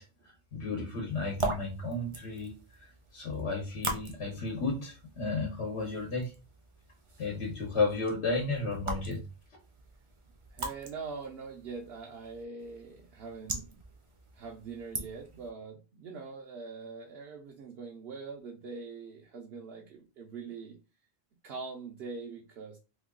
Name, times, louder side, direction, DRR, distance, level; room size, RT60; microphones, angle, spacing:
voice 1, 0.0-2.5 2.8-6.3 7.2-9.2, left 3 dB, 85° left, 0 dB, 1.2 m, -33 dB
sound 1, 1.1-15.5, right 2 dB, 35° right, 0.6 m, -42 dB
voice 2, 10.5-13.7 14.3-20.8 21.4-22.8, right 4 dB, 70° right, -1 dB, 0.9 m, -43 dB
2.9 x 2.3 x 3.6 m, 0.30 s
omnidirectional pair, 1.1 m